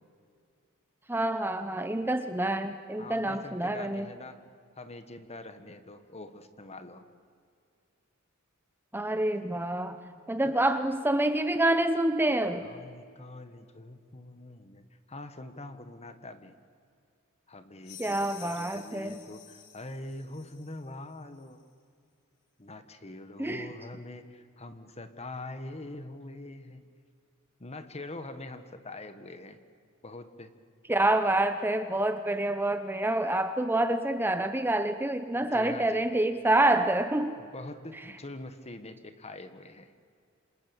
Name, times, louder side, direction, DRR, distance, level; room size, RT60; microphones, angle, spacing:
voice 1, 1.1-4.1 8.9-10.0 10.3-12.7 18.0-19.2 23.4-23.7 30.9-37.4 37.9-38.0, right 1 dB, 10° right, 9 dB, 0.8 m, -27 dB
voice 2, 3.0-4.4 4.8-7.0 10.4-10.6 12.6-14.8 15.1-16.6 17.5-21.6 22.6-26.8 27.6-29.6 30.0-30.5 35.5-36.1 37.4-39.9, left 2 dB, 30° left, 9 dB, 1.6 m, -44 dB
sound 1, 17.8-20.8, left 7 dB, 85° left, 4.2 m, -50 dB
28.0 x 26.0 x 7.2 m, 2.3 s
head